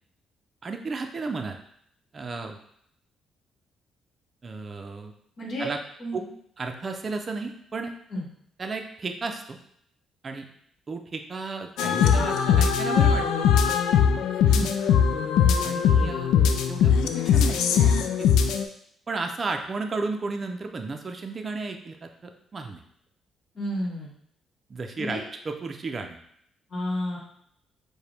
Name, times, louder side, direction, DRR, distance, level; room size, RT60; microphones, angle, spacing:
voice 1, 0.6-1.6 2.1-2.6 4.4-5.1 5.6-5.8 6.1-6.3 6.6-7.9 8.6-9.6 10.2-10.5 10.9-13.5 15.6-17.8 18.2-18.3 19.1-22.8 24.7-26.2, right 3 dB, 35° right, 5 dB, 0.4 m, -33 dB
voice 2, 5.4-5.7 6.0-6.2 8.1-8.3 14.5-14.7 23.5-24.1 25.0-25.2 26.7-27.2, equal, 55° left, -3 dB, 1.3 m, -31 dB
sound 1, 11.8-18.6, left 7 dB, 85° left, 0.3 m, -21 dB
4.7 x 2.2 x 3.3 m, 0.69 s
cardioid pair, 90°, 0 cm